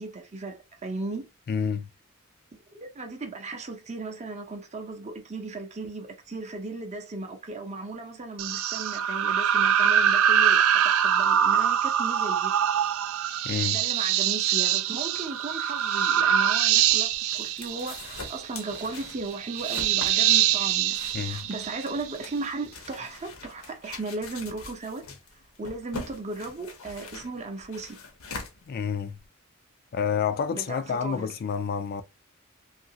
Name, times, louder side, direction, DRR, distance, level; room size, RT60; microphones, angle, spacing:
voice 1, 0.0-1.3 2.7-12.5 13.7-25.1 25.6-28.0 30.5-31.3, right 3 dB, 30° right, 0.6 m, -36 dB
voice 2, 1.5-1.9 13.4-13.8 21.1-21.5 28.7-29.2 29.9-32.0, left 7 dB, 45° left, 0.3 m, -29 dB
sound 1, 8.4-22.3, right 9 dB, 65° right, 0.3 m, -24 dB
sound 2, 16.8-29.3, left 3 dB, 70° left, 0.8 m, -43 dB
2.8 x 2.5 x 2.7 m
head